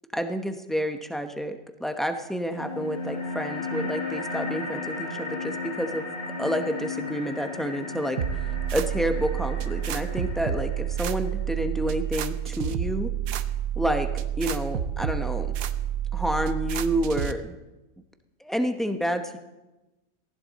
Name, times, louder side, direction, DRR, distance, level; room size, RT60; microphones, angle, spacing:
voice 1, 0.1-6.1 6.4-8.2 8.7-13.1 13.8-14.1 14.4-15.5 16.1-17.6 18.4-19.4, equal, ahead, 6 dB, 0.7 m, -29 dB
sound 1, 2.5-11.5, left 3 dB, 35° left, 6.1 m, -35 dB
sound 2, 8.2-17.3, right 10 dB, 80° right, 1.2 m, -29 dB
18.5 x 15.0 x 4.1 m, 1.0 s
omnidirectional pair, 1.5 m